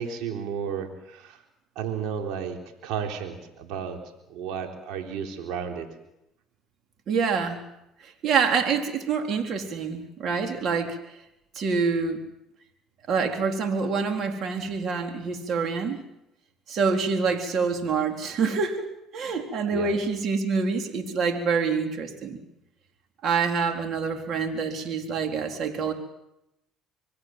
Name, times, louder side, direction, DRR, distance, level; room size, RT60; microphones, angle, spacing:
voice 1, 0.0-1.4 1.8-4.0 4.3-5.9 19.7-19.9, right 7 dB, 70° right, 3 dB, 3.8 m, -33 dB
voice 2, 7.1-7.6 8.0-11.0 11.6-12.2 13.1-16.0 16.7-22.4 23.2-25.9, right 5 dB, 55° right, 5 dB, 3.8 m, -26 dB
26.5 x 22.0 x 7.8 m, 0.88 s
supercardioid pair, 85°, 0 cm